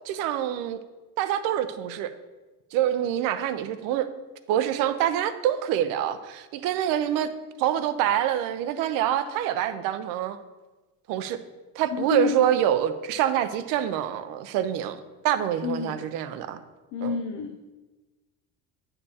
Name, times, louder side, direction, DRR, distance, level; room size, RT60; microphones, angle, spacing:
voice 1, 0.1-0.8 1.2-2.1 2.7-4.1 4.5-7.3 7.6-10.4 11.1-11.4 11.8-15.0 15.2-16.6 17.0-17.2, right 11 dB, 65° right, 11 dB, 0.6 m, -26 dB
voice 2, 11.9-12.4 15.6-16.1 16.9-17.7, left 6 dB, 55° left, 6 dB, 0.5 m, -29 dB
9.8 x 6.7 x 2.8 m, 1.2 s
cardioid pair, 160°, 35 cm